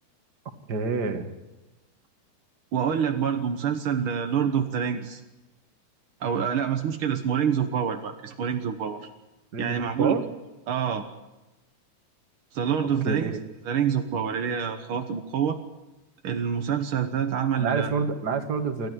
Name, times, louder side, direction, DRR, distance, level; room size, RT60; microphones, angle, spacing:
voice 1, 0.7-1.3 9.5-10.2 13.0-13.4 17.6-18.9, right 4 dB, 40° right, 7 dB, 1.7 m, -27 dB
voice 2, 2.7-5.2 6.2-9.1 9.6-10.2 10.7-11.0 12.5-13.4 13.6-15.6 16.2-17.9, right 7 dB, 80° right, 6 dB, 1.2 m, -26 dB
28.0 x 12.5 x 9.3 m, 1.0 s
omnidirectional pair, 4.2 m